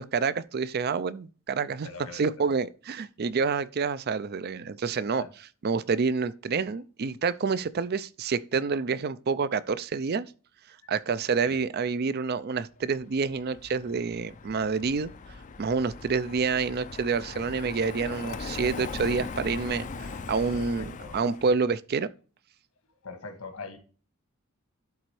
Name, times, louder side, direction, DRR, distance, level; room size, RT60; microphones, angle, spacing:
voice 1, 0.0-5.2 5.6-10.3 10.9-15.1 15.6-22.1, right 5 dB, 45° right, 0.4 m, -28 dB
voice 2, 1.8-2.5 5.1-5.3 11.4-11.6 20.5-21.2 23.0-23.8, left 3 dB, 75° left, 1.7 m, -42 dB
Car passing by, 13.0-21.6, left 4 dB, 35° left, 0.5 m, -39 dB
12.0 x 4.0 x 3.1 m
head